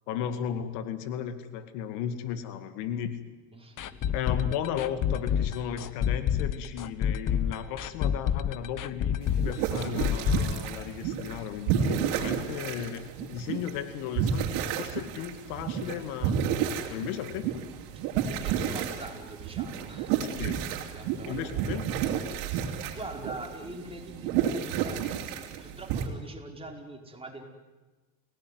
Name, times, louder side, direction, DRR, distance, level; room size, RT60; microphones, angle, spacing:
voice 1, 0.1-3.2 4.1-14.5 14.8-17.5 20.2-20.6 21.2-21.9, left 9 dB, 85° left, 10 dB, 2.2 m, -35 dB
voice 2, 3.5-4.1 17.9-20.4 20.9-21.8 22.9-27.4, right 2 dB, 10° right, 1 dB, 5.0 m, -43 dB
sound 1, 3.8-11.5 11.8-11.9 12.3-12.4, left 8 dB, 40° left, 1.2 m, -28 dB
sound 2, 9.2-26.1, right 8 dB, 85° right, 3.3 m, -31 dB
29.5 x 17.5 x 9.6 m, 1.2 s
supercardioid pair, 105°, 47 cm